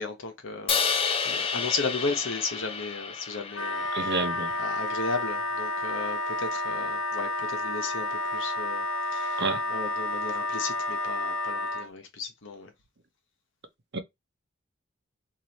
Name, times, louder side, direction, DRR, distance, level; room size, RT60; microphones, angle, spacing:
voice 1, 0.0-4.1 4.6-8.8 9.1-12.7, left 4 dB, 65° left, 1.1 m, -35 dB
Crash cymbal, 0.7-4.9, left 6 dB, 30° left, 0.5 m, -31 dB
Wind instrument woodwind instrument, 3.5-11.9, left 2 dB, 85° left, 0.9 m, -30 dB
voice 2, 3.9-4.5 9.4-9.6 13.9-14.0, right 3 dB, 55° right, 0.7 m, -29 dB
3.1 x 2.7 x 4.1 m
head